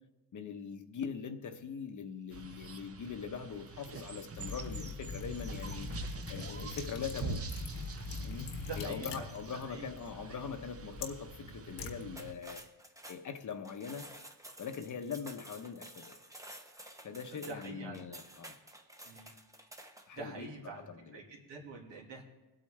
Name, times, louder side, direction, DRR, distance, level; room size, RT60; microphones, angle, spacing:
voice 1, 0.3-5.9 6.3-7.4 8.2-12.7 13.1-14.1 14.6-16.2 17.0-18.6 20.1-21.2, left 6 dB, 45° left, 7 dB, 1.0 m, -42 dB
sound 1, 2.3-12.3, right 5 dB, 35° right, 0.8 m, -45 dB
Liquid, 4.3-12.6, left 5 dB, 85° left, 1.6 m, -43 dB
voice 2, 8.5-9.9 10.2-10.5 16.7-16.9 17.3-18.0 19.0-19.3 19.8-22.2, right 4 dB, 90° right, 0 dB, 2.5 m, -47 dB
sound 2, 12.1-20.2, right 1 dB, 10° right, 0.9 m, -51 dB
21.0 x 8.6 x 3.3 m, 1.1 s
cardioid pair, 125°, 42 cm